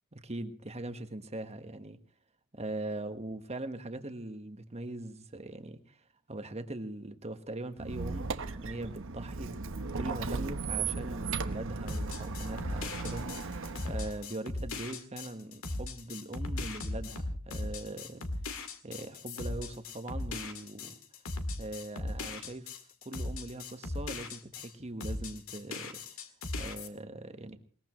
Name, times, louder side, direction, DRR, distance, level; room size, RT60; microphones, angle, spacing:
voice 1, 0.1-2.0 2.5-9.6 9.9-18.2 18.8-21.0 21.6-22.8 23.0-26.0 26.6-27.6, right 1 dB, 30° right, 8 dB, 1.4 m, -41 dB
Squeak, 7.8-14.2, right 4 dB, 60° right, 1.0 m, -36 dB
sound 1, 11.9-24.7 25.0-26.9, left 2 dB, 65° left, 2.1 m, -38 dB
21.5 x 20.5 x 3.1 m, 0.42 s
head